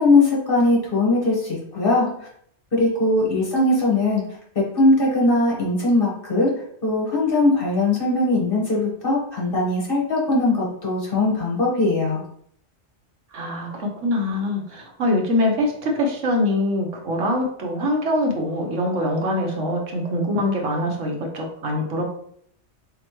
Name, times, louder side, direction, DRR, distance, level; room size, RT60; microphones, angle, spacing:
voice 1, 0.0-2.1 2.7-4.2 4.5-6.5 6.8-12.2, left 2 dB, 50° left, -4 dB, 1.5 m, -20 dB
voice 2, 13.3-22.0, left 1 dB, 80° right, 1 dB, 1.3 m, -23 dB
4.3 x 3.6 x 3.0 m, 0.66 s
omnidirectional pair, 1.3 m